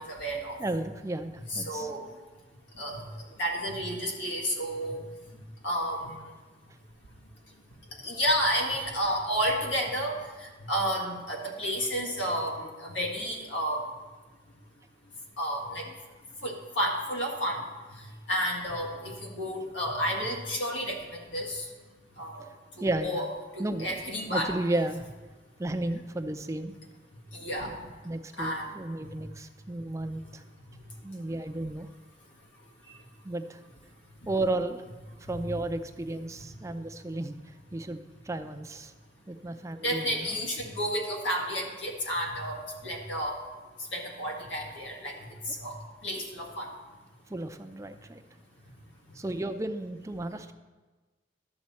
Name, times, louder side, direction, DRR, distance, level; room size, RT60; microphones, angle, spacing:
voice 1, 0.0-0.6 1.4-2.0 2.8-3.0 3.4-5.0 5.6-6.1 8.0-13.8 15.4-15.9 16.4-17.6 18.3-21.6 22.2-22.4 22.8-24.5 27.3-27.7 28.4-28.6 29.0-29.1 35.3-35.4 36.5-36.6 39.8-43.4 43.9-45.2 45.6-45.8 46.0-46.7, equal, 80° left, 1 dB, 1.8 m, -31 dB
voice 2, 0.6-1.9 15.9-16.0 22.8-23.2 23.6-24.0 24.3-25.0 25.6-26.7 28.0-30.4 31.0-31.9 33.2-33.6 34.3-34.8 35.3-37.4 37.7-38.9 39.3-40.4 47.3-48.2 49.2-50.5, right 2 dB, 15° right, 8 dB, 0.5 m, -33 dB
11.5 x 7.2 x 4.3 m, 1.3 s
head